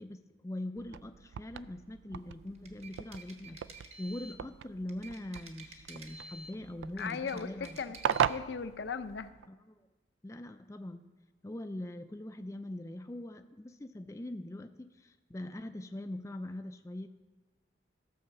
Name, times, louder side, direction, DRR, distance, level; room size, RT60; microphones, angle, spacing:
voice 1, 0.0-7.8 9.5-9.8 10.2-11.0 11.4-17.1, left 1 dB, 15° left, 8 dB, 0.4 m, -42 dB
sound 1, 0.8-9.5, right 8 dB, 85° right, 0.3 m, -38 dB
sound 2, 2.5-4.4 4.9-6.6 6.9-8.4, right 3 dB, 35° right, 1.0 m, -51 dB
voice 2, 7.0-8.0 8.3-9.3, left 5 dB, 70° left, 11 dB, 0.5 m, -37 dB
14.5 x 5.6 x 7.0 m, 1.2 s
head